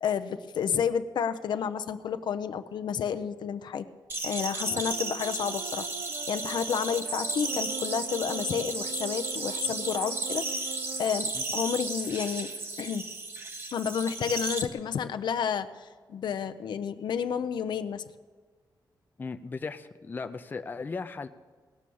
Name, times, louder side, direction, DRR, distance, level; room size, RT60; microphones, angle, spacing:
voice 1, 0.0-3.9 4.2-5.9 6.3-12.5 12.8-13.1 13.7-18.0, left 7 dB, 80° left, 9 dB, 0.6 m, -31 dB
sound 1, 4.1-14.7, right 2 dB, 30° right, 1.0 m, -34 dB
sound 2, 4.6-11.1, right 8 dB, 80° right, 0.5 m, -43 dB
voice 2, 19.2-21.3, left 4 dB, 25° left, 8 dB, 0.5 m, -37 dB
18.5 x 6.2 x 7.0 m, 1.5 s
wide cardioid pair, 150°, 8 cm